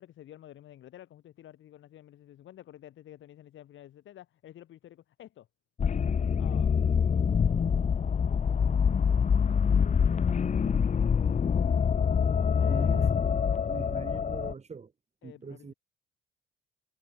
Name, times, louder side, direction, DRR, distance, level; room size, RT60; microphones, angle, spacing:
voice 1, 0.0-5.5 6.4-7.0 9.4-9.7 12.6-13.4 15.2-15.7, left 12 dB, 75° left, 4.6 m, -50 dB
Creepy Dungeon Ambience, 5.8-14.5, left 6 dB, 35° left, 1.0 m, -25 dB
voice 2, 12.7-13.0 13.7-14.9 15.2-15.7, right 5 dB, 35° right, 2.4 m, -42 dB
cardioid pair, 90°, 20 cm